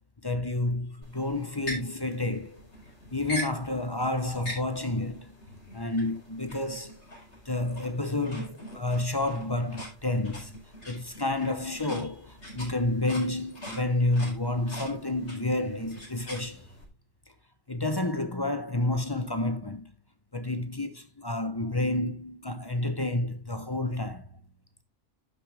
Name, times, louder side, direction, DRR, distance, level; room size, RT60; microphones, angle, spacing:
voice 1, 0.2-2.6 3.1-5.3 5.7-7.0 7.5-10.6 10.9-16.7 17.7-19.9 20.3-24.3, left 2 dB, 25° left, 0.9 m, -30 dB
sound 1, 1.0-16.8, equal, 80° left, 5.2 m, -43 dB
11.0 x 6.4 x 3.5 m
omnidirectional pair, 1.2 m